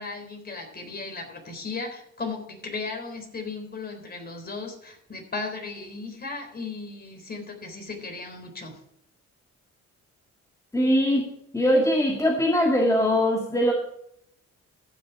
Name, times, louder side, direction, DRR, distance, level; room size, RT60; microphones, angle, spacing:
voice 1, 0.0-8.8, left 3 dB, 30° left, 3 dB, 3.9 m, -36 dB
voice 2, 10.7-13.7, equal, 10° left, -1 dB, 2.0 m, -22 dB
14.5 x 6.7 x 4.7 m, 0.70 s
cardioid pair, 90°, 30 cm